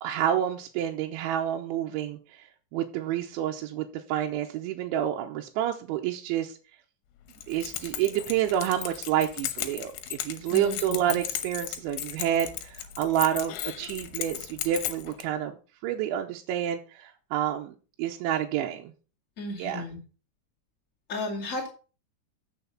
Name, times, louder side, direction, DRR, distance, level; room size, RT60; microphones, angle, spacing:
voice 1, 0.0-6.6 7.5-15.6 15.8-18.9 19.6-19.9, right 11 dB, 85° right, 2 dB, 3.1 m, -29 dB
Keys jangling, 7.3-15.2, left 12 dB, 75° left, 2.8 m, -36 dB
voice 2, 10.5-11.2 19.4-20.0 21.1-21.7, left 2 dB, 50° left, -2 dB, 0.9 m, -34 dB
8.3 x 6.8 x 5.7 m, 0.36 s
omnidirectional pair, 5.5 m